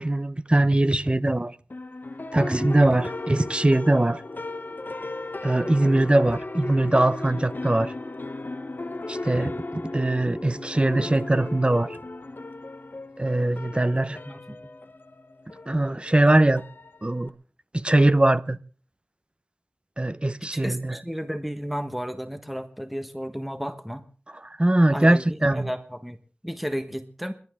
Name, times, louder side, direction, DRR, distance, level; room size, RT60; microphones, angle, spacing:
voice 1, 0.0-1.5 2.3-4.2 5.4-7.9 9.1-12.0 13.2-14.2 15.7-16.6 17.0-17.3 17.7-18.6 20.0-21.0 24.6-25.7, right 1 dB, 30° right, 0.8 m, -21 dB
sound 1, 1.7-17.3, left 2 dB, 60° left, 0.9 m, -36 dB
voice 2, 14.1-14.6 20.4-24.1 24.9-26.2 26.4-27.3, equal, 5° right, 1.3 m, -33 dB
30.0 x 12.0 x 3.7 m
wide cardioid pair, 55°, 4 cm